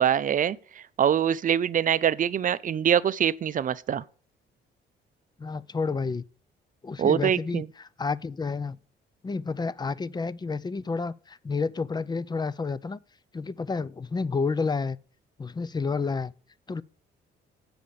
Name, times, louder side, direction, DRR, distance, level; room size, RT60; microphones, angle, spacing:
voice 1, 0.0-4.0 7.0-7.7, right 9 dB, 45° right, 0.5 m, -24 dB
voice 2, 5.4-6.2 6.8-8.8 9.2-13.0 13.3-15.0 15.4-16.3 16.7-16.8, left 4 dB, 20° left, 0.5 m, -30 dB
7.8 x 5.0 x 6.9 m
cardioid pair, 90°, 20 cm